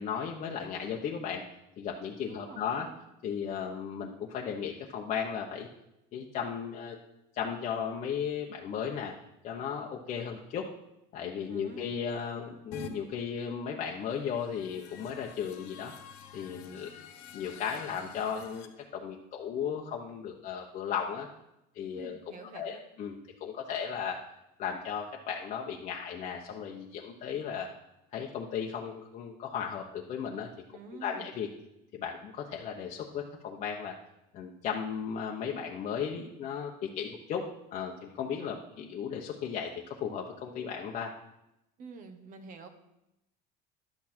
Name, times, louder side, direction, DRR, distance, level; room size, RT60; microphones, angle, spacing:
voice 1, 0.0-1.4 1.8-2.9 3.2-5.7 6.1-7.0 7.3-9.1 9.4-10.7 11.1-15.9 16.3-16.9 17.3-21.3 21.7-24.2 24.6-27.7 28.1-30.5 30.9-31.5 31.9-34.0 34.3-41.1, left 7 dB, 40° left, -1 dB, 0.9 m, -35 dB
voice 2, 2.3-2.9 11.5-12.0 21.9-22.8 30.7-31.3 41.8-42.7, right 4 dB, 45° right, 7 dB, 1.2 m, -48 dB
sound 1, 12.7-12.9 14.3-18.7, left 7 dB, 70° left, 1.4 m, -46 dB
11.5 x 8.4 x 4.4 m, 0.87 s
cardioid pair, 155°, 19 cm